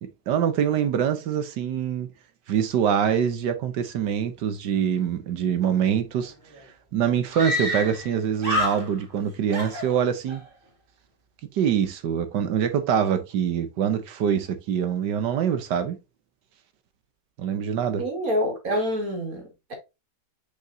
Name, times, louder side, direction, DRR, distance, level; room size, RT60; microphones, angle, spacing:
voice 1, 0.0-2.1 2.5-6.3 6.9-10.4 11.5-16.0 17.4-18.0, right 8 dB, 75° right, 1.5 m, -24 dB
Screaming, 6.2-6.3 6.5-6.6 7.3-8.1 8.4-9.2 9.5-10.4, left 1 dB, 30° right, 2.0 m, -28 dB
voice 2, 18.0-19.7, equal, 50° right, 2.7 m, -27 dB
6.6 x 5.2 x 2.7 m
omnidirectional pair, 1.9 m